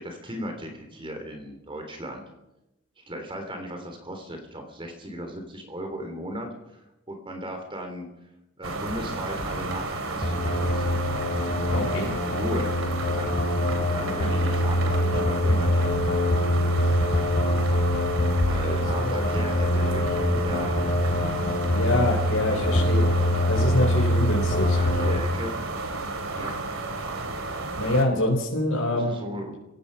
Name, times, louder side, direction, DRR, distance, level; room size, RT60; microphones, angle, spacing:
voice 1, 0.0-2.2 3.0-8.1 8.6-10.9 12.3-12.7 13.1-13.3 13.9-16.1 18.5-20.9 22.7-22.9 24.7-25.5 26.3-26.5 28.9-29.6, equal, 25° right, 4 dB, 3.5 m, -36 dB
sound 1, 8.6-28.0, right 2 dB, 75° right, 3.2 m, -32 dB
sound 2, 10.2-25.2, left 1 dB, 50° left, 2.9 m, -24 dB
voice 2, 11.7-12.1 19.0-19.3 21.7-23.1 23.5-24.8 27.8-29.2, left 1 dB, 85° left, -1 dB, 4.4 m, -25 dB
29.5 x 16.5 x 5.6 m, 0.93 s
head